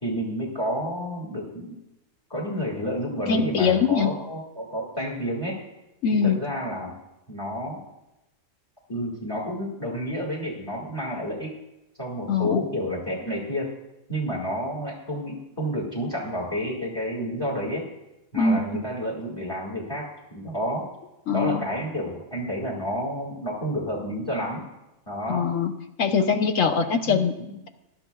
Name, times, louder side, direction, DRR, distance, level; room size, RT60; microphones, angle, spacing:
voice 1, 0.0-1.8 2.3-5.6 6.1-6.9 7.3-7.8 8.9-11.5 12.0-13.7 14.1-17.8 18.3-20.9 21.3-24.6 25.1-25.5 26.6-26.7 27.0-27.6, equal, 15° left, -3 dB, 1.9 m, -30 dB
voice 2, 3.3-4.1 6.0-6.4 12.3-12.6 18.3-18.8 21.3-21.7 25.3-25.7 26.0-27.3, left 5 dB, 70° left, 7 dB, 1.2 m, -22 dB
19.5 x 12.0 x 2.3 m, 0.93 s
omnidirectional pair, 1.4 m